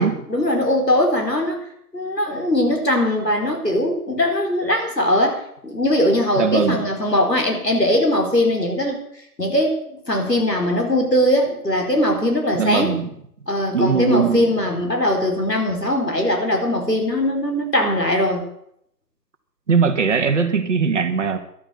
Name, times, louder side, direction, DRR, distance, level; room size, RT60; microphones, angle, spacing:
voice 1, 0.0-1.6 1.9-9.0 9.4-13.0 13.5-18.4, left 1 dB, 90° left, 2 dB, 4.4 m, -20 dB
voice 2, 6.4-6.8 12.5-13.1 13.7-14.4 19.7-21.4, right 5 dB, 45° right, 7 dB, 1.9 m, -20 dB
14.0 x 11.5 x 6.7 m, 0.70 s
figure-of-eight pair, 140°, 48 cm